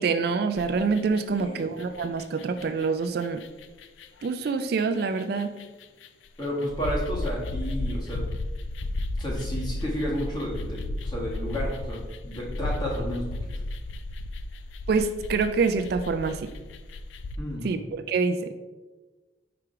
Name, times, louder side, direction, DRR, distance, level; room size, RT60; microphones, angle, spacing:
voice 1, 0.0-3.4 4.2-5.5 14.9-16.5 17.6-18.5, right 4 dB, 55° right, 9 dB, 0.3 m, -26 dB
sound 1, 0.6-1.4 1.8-17.4, left 2 dB, 80° left, 0.4 m, -34 dB
voice 2, 1.3-1.7 6.4-8.3 9.2-13.5 17.4-17.7, equal, 25° left, -4 dB, 1.6 m, -32 dB
4.9 x 4.7 x 4.7 m, 1.2 s
head